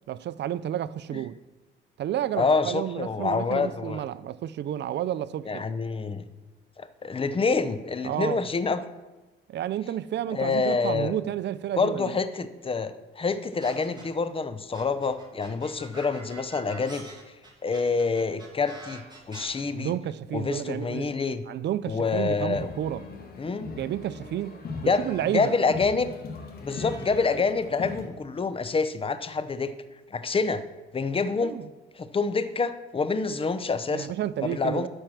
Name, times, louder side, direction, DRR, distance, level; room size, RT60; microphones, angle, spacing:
voice 1, 0.1-1.4 2.0-5.6 8.0-8.5 9.5-12.2 19.7-21.1 21.5-23.0 23.8-24.6 24.8-25.5 31.4-31.7 33.9-34.9, right 11 dB, 60° right, 0.5 m, -31 dB
voice 2, 2.4-4.0 5.5-6.3 6.8-8.8 10.3-11.1 11.8-17.1 17.6-19.0 19.3-19.9 20.3-21.4 21.9-22.7 23.4-23.7 24.8-26.1 26.6-29.7 30.1-30.6 30.9-31.6 32.0-34.1 34.4-34.9, left 4 dB, 25° left, 0.7 m, -27 dB
sound 1, 13.6-14.3 14.7-19.5, right 2 dB, 20° right, 2.6 m, -44 dB
sound 2, 22.5-28.1, left 4 dB, 50° left, 1.8 m, -39 dB
12.0 x 4.5 x 6.4 m
cardioid pair, 90°, 20 cm